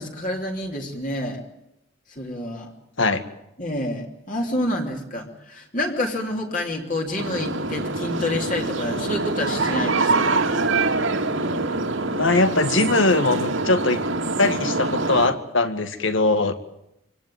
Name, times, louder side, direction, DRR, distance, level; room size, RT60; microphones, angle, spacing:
voice 1, 0.0-1.4 2.1-2.7 3.6-10.3, left 1 dB, 40° left, 2 dB, 3.2 m, -28 dB
sound 1, 7.2-15.3, right 3 dB, 80° right, 2.6 m, -24 dB
voice 2, 12.1-14.0 14.4-16.5, left 2 dB, 75° left, 10 dB, 1.9 m, -21 dB
25.5 x 17.5 x 9.3 m, 0.85 s
head